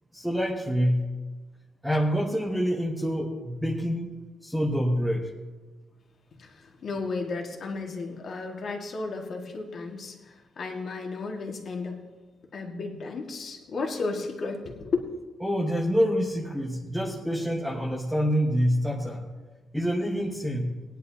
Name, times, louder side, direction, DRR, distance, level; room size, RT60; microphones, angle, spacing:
voice 1, 0.1-1.1 1.8-4.1 4.4-5.3 15.4-19.3 19.7-20.7, equal, ahead, -3 dB, 1.1 m, -26 dB
voice 2, 6.4-12.0 12.5-15.1, left 3 dB, 45° left, 2 dB, 1.8 m, -33 dB
20.0 x 10.5 x 2.8 m, 1.3 s
wide cardioid pair, 160°, 0 cm